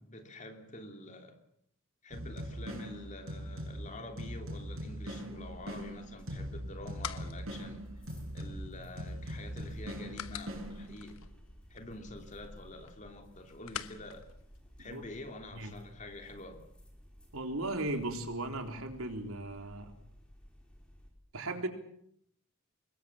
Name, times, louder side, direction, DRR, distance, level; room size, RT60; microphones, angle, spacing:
voice 1, 0.0-1.4 2.0-7.8 8.3-11.2 11.7-14.3 14.8-16.6, left 2 dB, 35° left, 5 dB, 3.1 m, -47 dB
sound 1, 2.1-11.2, equal, 75° right, 7.1 m, -42 dB
sound 2, 5.4-21.1, equal, 5° left, 4.9 m, -55 dB
sound 3, 6.4-15.3, left 9 dB, 85° left, 1.2 m, -49 dB
voice 2, 17.3-19.9 21.3-21.7, right 2 dB, 90° right, 5 dB, 3.8 m, -36 dB
25.5 x 21.5 x 7.3 m, 0.70 s
head